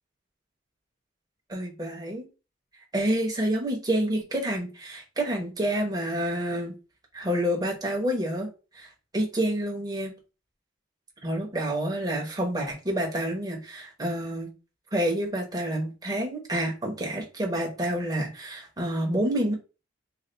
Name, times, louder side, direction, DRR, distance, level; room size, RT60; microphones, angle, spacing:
voice 1, 1.5-2.3 2.9-6.7 7.1-8.5 8.7-10.1 11.2-14.5 14.9-19.5, right 1 dB, 20° right, 0 dB, 1.1 m, -28 dB
3.4 x 2.5 x 3.9 m, 0.31 s
head